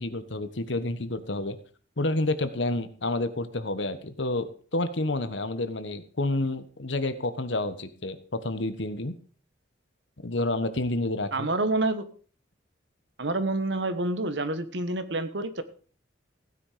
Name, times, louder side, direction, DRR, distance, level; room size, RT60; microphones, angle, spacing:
voice 1, 0.0-1.6 2.0-9.1 10.2-11.5, left 2 dB, 75° left, 11 dB, 1.3 m, -29 dB
voice 2, 11.3-12.0 13.2-15.6, right 2 dB, 70° right, 11 dB, 1.4 m, -28 dB
15.5 x 9.7 x 5.1 m, 0.41 s
head